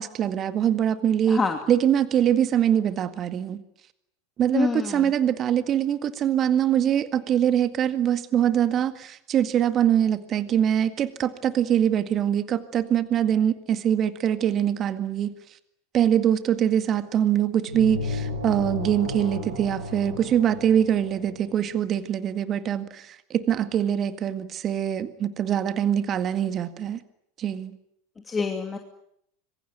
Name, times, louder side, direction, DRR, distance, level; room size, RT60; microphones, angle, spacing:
voice 1, 0.0-1.4 1.7-3.6 4.4-15.3 15.9-27.0 27.4-27.7, right 9 dB, 35° right, 11 dB, 1.9 m, -23 dB
voice 2, 1.3-1.6 4.5-5.1 28.3-28.8, left 4 dB, 15° left, 4 dB, 2.7 m, -26 dB
sound 1, 17.7-21.5, left 1 dB, 85° right, 7.8 m, -33 dB
26.0 x 24.0 x 9.3 m, 0.75 s
figure-of-eight pair, 85°, 0 cm